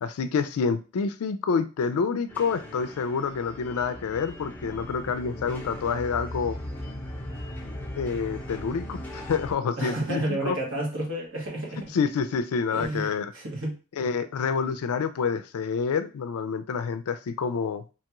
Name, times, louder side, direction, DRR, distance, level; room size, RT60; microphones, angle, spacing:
voice 1, 0.0-6.6 8.0-10.6 11.9-13.3 14.0-17.8, left 5 dB, 80° left, 0.4 m, -28 dB
sound 1, 2.3-9.5, left 1 dB, 10° left, 0.7 m, -38 dB
voice 2, 9.8-11.8 12.7-13.8, right 1 dB, 65° right, 1.1 m, -31 dB
3.0 x 2.3 x 2.9 m
head